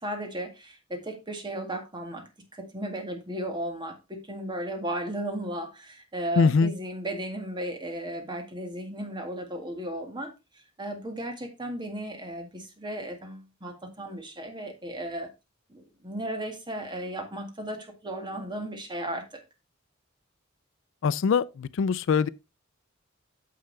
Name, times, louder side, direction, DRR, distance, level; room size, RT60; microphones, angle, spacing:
voice 1, 0.0-2.2 2.5-10.3 10.8-15.3 15.7-19.4, right 1 dB, 25° right, 1.9 m, -35 dB
voice 2, 6.4-6.7 21.0-22.3, left 5 dB, 65° left, 0.4 m, -23 dB
9.3 x 6.6 x 3.3 m
head